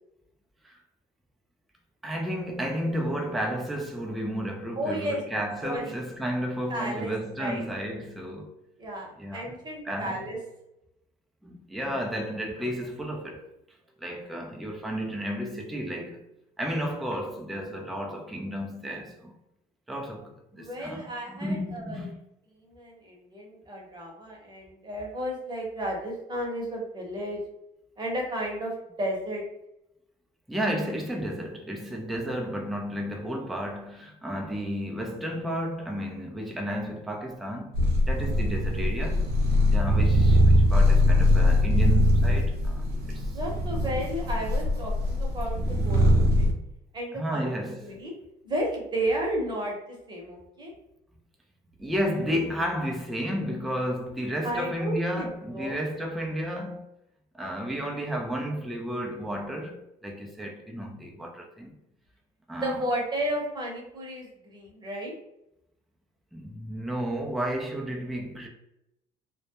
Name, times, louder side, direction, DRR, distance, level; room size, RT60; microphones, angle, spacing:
voice 1, 2.0-8.5 9.2-9.6 9.8-10.2 11.4-13.5 14.0-16.2 16.6-19.4 19.9-21.1 21.4-22.2 30.5-37.7 38.1-39.2 39.7-43.4 47.1-48.0 51.8-56.8 57.3-61.7 62.5-62.8 66.3-68.5, equal, ahead, 0.4 m, -32 dB
voice 2, 4.8-5.2 5.6-6.0 6.7-7.6 8.8-10.4 20.6-22.1 22.6-27.4 28.0-29.4 40.5-40.6 43.3-46.5 46.9-48.1 48.4-49.8 50.1-50.7 54.4-55.8 62.6-65.1, right 1 dB, 25° right, 0.9 m, -33 dB
sound 1, 37.7-46.5, left 1 dB, 70° right, 0.8 m, -22 dB
2.2 x 2.0 x 2.8 m
cardioid pair, 110°, 17 cm